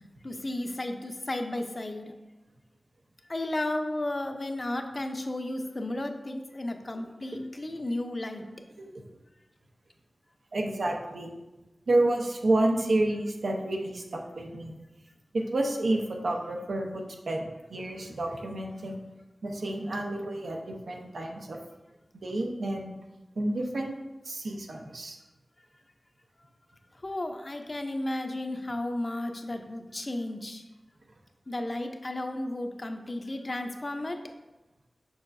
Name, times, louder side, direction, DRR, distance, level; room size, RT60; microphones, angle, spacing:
voice 1, 0.2-2.1 3.3-8.4 27.0-30.6 31.5-34.2, left 1 dB, 40° left, 5 dB, 0.6 m, -33 dB
voice 2, 10.5-11.3 11.9-14.7 15.3-19.0 19.4-21.6 22.2-22.9 23.4-23.9 24.2-25.2, right 1 dB, 90° right, 1 dB, 0.8 m, -29 dB
6.4 x 6.1 x 2.6 m, 1.0 s
wide cardioid pair, 70°, 0 cm